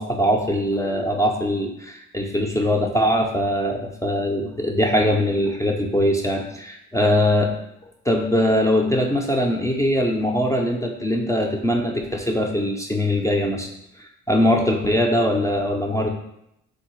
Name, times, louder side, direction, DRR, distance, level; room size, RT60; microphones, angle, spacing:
voice 1, 0.0-7.5 8.1-13.7 14.0-16.1, left 1 dB, 10° left, 1 dB, 0.3 m, -21 dB
3.5 x 2.1 x 3.0 m, 0.79 s
supercardioid pair, 70°, 36 cm